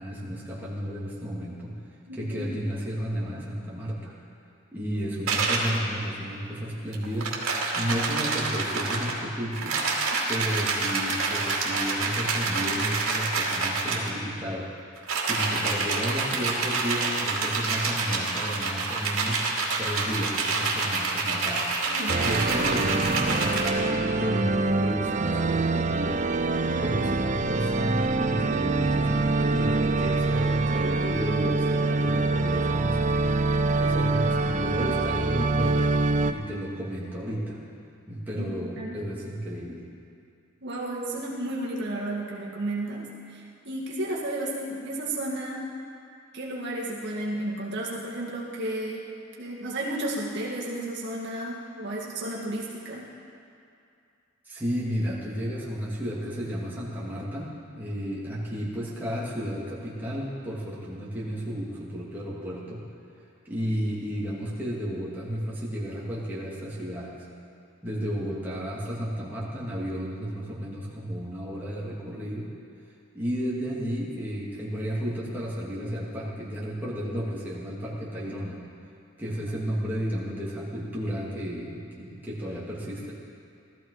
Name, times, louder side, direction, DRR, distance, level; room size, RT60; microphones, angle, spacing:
voice 1, 0.0-1.7 2.2-4.1 4.7-7.3 7.8-9.8 10.3-14.7 14.9-19.5 19.8-21.7 22.2-26.2 26.8-35.8 36.3-37.6 38.1-39.8 54.4-62.8 63.4-67.1 67.8-72.5 73.1-78.6 79.2-83.1, equal, 10° right, -7 dB, 2.7 m, -32 dB
voice 2, 2.1-2.5 21.9-22.3 38.4-38.5 38.8-39.0 40.6-45.7 46.3-49.1 49.4-53.1, right 1 dB, 55° right, -5 dB, 2.0 m, -33 dB
sound 1, 5.3-5.8 6.9-9.2 9.5-14.1 15.0-23.7, right 3 dB, 75° right, 2.4 m, -27 dB
sound 2, 22.1-36.3, right 3 dB, 35° right, 0.5 m, -25 dB
18.0 x 13.5 x 4.9 m, 2.4 s
head